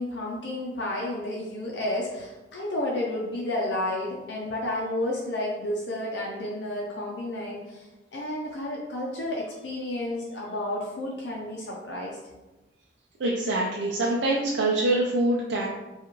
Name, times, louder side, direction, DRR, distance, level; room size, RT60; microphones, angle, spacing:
voice 1, 0.0-12.2, left 1 dB, 85° left, -3 dB, 0.6 m, -31 dB
voice 2, 13.2-15.7, right 2 dB, 85° right, -3 dB, 0.5 m, -25 dB
4.9 x 2.4 x 3.1 m, 1.1 s
head